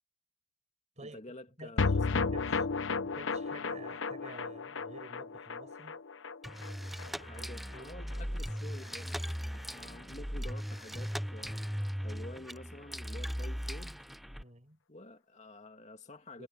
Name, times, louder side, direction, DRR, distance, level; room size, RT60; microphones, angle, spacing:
voice 1, 1.0-2.4 7.2-13.9 14.9-16.5, left 1 dB, 40° left, 2.4 m, -50 dB
voice 2, 1.6-2.6 3.0-6.0 7.2-8.0 14.4-14.8 16.4-16.5, right 2 dB, 35° right, 6.1 m, -51 dB
sound 1, 1.8-8.2 8.5-8.6 8.8-8.9, left 4 dB, 90° left, 0.8 m, -34 dB
sound 2, 6.4-14.4, equal, ahead, 0.3 m, -38 dB
head